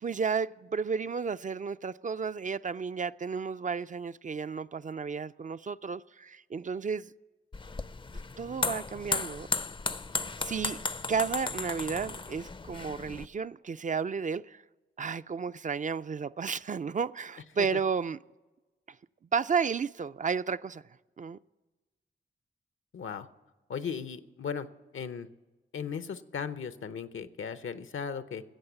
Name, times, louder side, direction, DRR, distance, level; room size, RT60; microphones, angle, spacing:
voice 1, 0.0-7.1 8.4-9.5 10.4-10.8 11.1-14.6 15.0-18.2 19.3-20.8 21.2-21.4, right 6 dB, 40° right, 0.4 m, -32 dB
sound 1, 7.5-13.3, left 3 dB, 25° left, 0.4 m, -35 dB
voice 2, 22.9-23.3 23.7-24.7 24.9-25.3 25.7-28.4, left 6 dB, 75° left, 0.7 m, -37 dB
14.5 x 7.9 x 8.0 m
cardioid pair, 55°, 21 cm